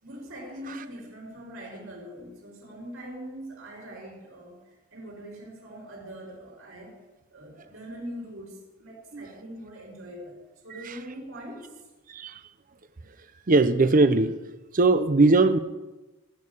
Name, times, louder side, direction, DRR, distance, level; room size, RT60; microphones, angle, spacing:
voice 1, 0.0-7.0 7.3-11.7, equal, 65° right, 4.7 m, -42 dB
voice 2, 12.1-12.4 13.5-14.3 14.7-15.6, right 3 dB, 40° right, 0.7 m, -20 dB
15.0 x 6.6 x 8.6 m
head